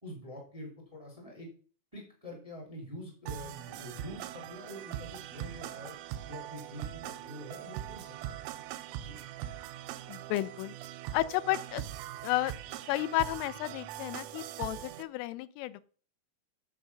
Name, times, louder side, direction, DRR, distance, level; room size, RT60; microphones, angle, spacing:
voice 1, 0.0-1.5 1.9-5.9 6.2-8.4 9.0-9.2, equal, 20° right, -2 dB, 1.0 m, -46 dB
sound 1, 3.3-15.0, right 12 dB, 90° right, 3.3 m, -42 dB
voice 2, 10.1-10.7 11.1-11.8 12.2-12.5 12.9-15.8, left 17 dB, 85° left, 17 dB, 3.1 m, -32 dB
7.4 x 7.0 x 5.4 m, 0.41 s
omnidirectional pair, 5.8 m